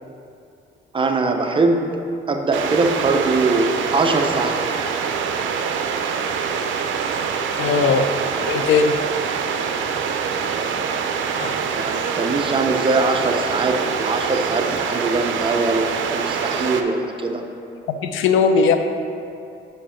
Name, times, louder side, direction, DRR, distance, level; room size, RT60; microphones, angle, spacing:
voice 1, 0.9-4.6 7.7-7.8 10.6-10.8 11.5-17.4, right 3 dB, 25° right, 4 dB, 0.7 m, -22 dB
sound 1, 2.5-16.8, right 6 dB, 75° right, 0.5 m, -24 dB
voice 2, 7.6-8.1 8.4-9.0 11.4-11.6 18.0-18.8, left 5 dB, 85° left, 7 dB, 0.5 m, -18 dB
5.3 x 4.9 x 5.6 m, 2.6 s
cardioid pair, 90°, 20 cm